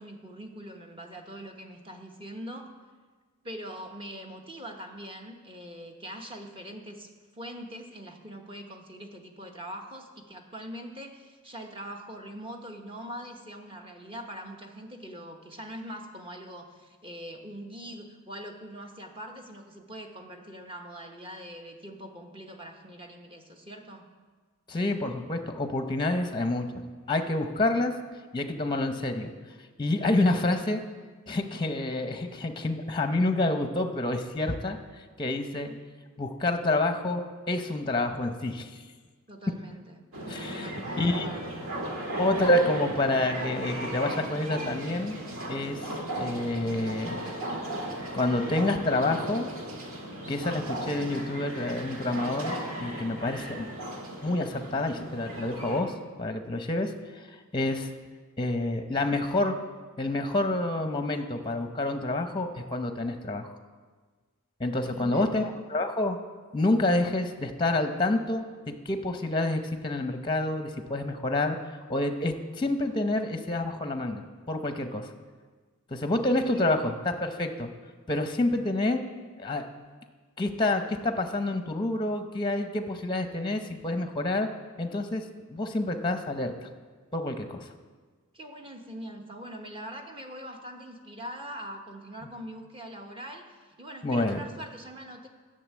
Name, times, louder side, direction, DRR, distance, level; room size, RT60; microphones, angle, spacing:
voice 1, 0.0-2.7 3.4-24.0 35.7-35.8 39.3-40.0 40.5-41.5 64.8-65.5 76.4-76.8 88.3-95.3, equal, 25° right, 3 dB, 1.1 m, -43 dB
voice 2, 24.7-26.7 27.1-27.9 28.3-29.3 29.8-30.8 31.3-34.8 35.2-35.7 36.2-38.7 40.3-40.7 41.0-41.3 42.2-45.2 45.5-47.2 48.1-49.5 50.3-53.7 54.2-55.9 56.2-57.3 57.5-57.9 58.4-59.6 60.0-63.6 64.6-66.2 66.5-68.4 68.8-71.6 71.9-75.1 75.9-77.7 78.1-79.0 79.4-79.6 80.4-84.5 84.8-85.2 85.5-86.7 87.1-87.7 94.0-94.4, left 2 dB, 20° left, 7 dB, 0.7 m, -28 dB
sound 1, 40.1-55.8, right 1 dB, 65° right, 1.8 m, -36 dB
11.0 x 6.6 x 8.3 m, 1.4 s
head